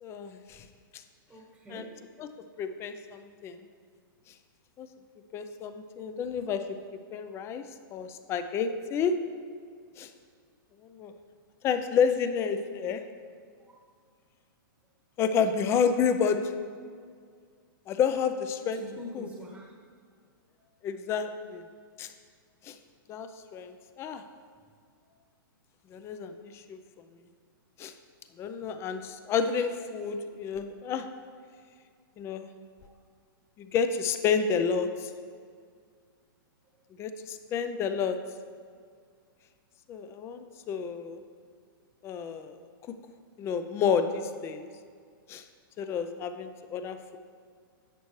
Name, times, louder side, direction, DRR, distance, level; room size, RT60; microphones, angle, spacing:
voice 1, 0.0-0.7 0.9-1.0 1.7-1.9 2.2-2.3 2.6-3.6 4.8-4.9 5.3-6.6 7.1-7.6 7.9-9.1 10.0-10.1 10.9-11.1 11.6-13.0 15.2-16.5 17.9-18.8 19.1-19.3 20.8-21.6 22.0-22.1 22.6-22.8 23.1-24.2 25.9-26.8 27.8-27.9 28.4-31.0 32.2-32.5 33.6-35.1 37.0-38.2 39.9-41.2 42.0-42.6 43.4-44.7 45.3-45.4 45.8-47.2, left 6 dB, 20° left, 9 dB, 0.5 m, -30 dB
voice 2, 1.3-1.9 18.7-19.7 25.0-25.2 28.6-28.7 32.8-32.9, equal, 5° right, -2 dB, 1.1 m, -45 dB
11.0 x 8.1 x 3.1 m, 2.1 s
hypercardioid pair, 140°, 12 cm